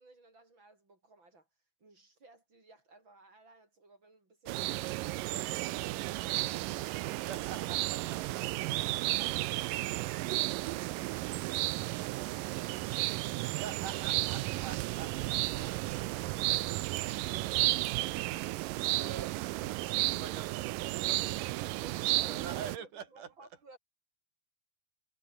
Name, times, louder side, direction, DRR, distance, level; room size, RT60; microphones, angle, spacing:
voice 1, 0.0-1.5 1.8-7.1 22.2-23.8, right 2 dB, 25° right, 7.1 m, -59 dB
sound 1, 4.5-22.8, right 18 dB, 85° right, 1.9 m, -33 dB
sound 2, 5.9-21.5, left 1 dB, 15° left, 8.2 m, -66 dB
voice 2, 7.3-8.6 13.6-15.1 18.9-23.5, right 7 dB, 50° right, 4.4 m, -46 dB
omnidirectional pair, 4.8 m